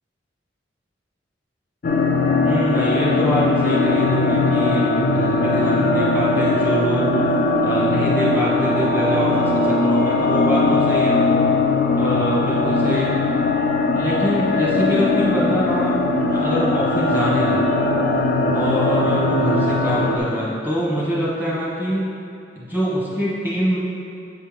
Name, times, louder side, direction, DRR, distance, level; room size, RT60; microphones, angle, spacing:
sound 1, 1.8-20.2, left 2 dB, 50° left, 0.4 m, -19 dB
voice 1, 2.4-7.1 7.6-11.2 11.9-13.2 13.9-16.0 16.3-17.6 18.5-22.1 22.5-23.8, equal, 10° right, -8 dB, 1.4 m, -24 dB
7.8 x 4.5 x 3.4 m, 2.6 s
head